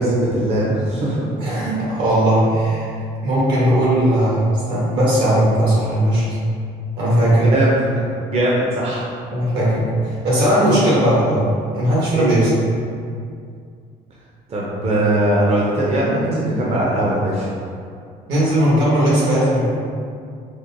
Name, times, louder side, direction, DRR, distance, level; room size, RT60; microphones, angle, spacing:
voice 1, 0.0-1.2 7.4-9.1 12.2-12.5 14.5-17.5, right 1 dB, 40° right, -5 dB, 0.5 m, -20 dB
voice 2, 1.4-2.9 3.2-6.2 7.0-7.4 9.3-11.4 11.7-12.5 18.3-19.7, right 1 dB, 80° right, -8 dB, 1.4 m, -17 dB
4.3 x 2.1 x 2.6 m, 2.3 s
cardioid pair, 110°, 17 cm